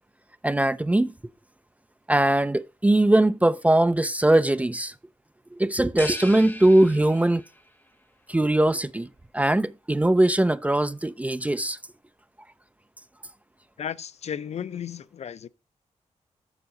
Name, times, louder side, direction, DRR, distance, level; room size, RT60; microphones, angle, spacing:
voice 1, 0.4-1.1 2.1-4.9 5.6-7.4 8.3-9.1 9.3-11.8, right 1 dB, 10° right, 0.3 m, -21 dB
sound 1, 6.0-7.7, left 1 dB, 15° left, 1.4 m, -38 dB
voice 2, 13.8-15.5, left 8 dB, 60° left, 0.4 m, -34 dB
7.0 x 6.4 x 3.9 m
wide cardioid pair, 110°, 12 cm